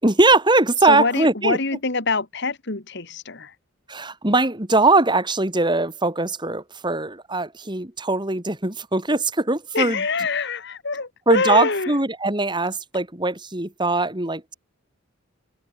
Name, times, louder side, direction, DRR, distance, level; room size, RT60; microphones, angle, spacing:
voice 1, 0.0-1.6 3.9-10.0 11.3-14.5, right 2 dB, 20° right, 2.6 m, -21 dB
voice 2, 0.8-3.5 9.7-11.9, left 4 dB, 55° left, 2.2 m, -25 dB
head